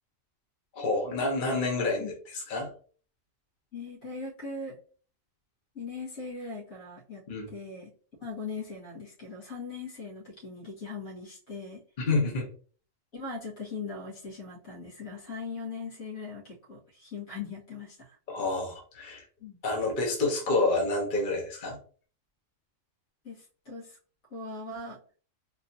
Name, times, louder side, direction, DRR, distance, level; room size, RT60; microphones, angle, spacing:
voice 1, 0.7-2.7 7.3-7.5 12.0-12.4 18.3-19.2 19.6-21.8, left 2 dB, 40° left, 0 dB, 1.1 m, -28 dB
voice 2, 3.7-4.8 5.7-7.2 7.5-7.9 8.2-11.8 13.1-18.2 19.4-19.6 23.2-24.0 24.3-25.0, left 4 dB, 85° left, -5 dB, 2.2 m, -40 dB
4.4 x 2.7 x 2.7 m, 0.42 s
omnidirectional pair, 1.4 m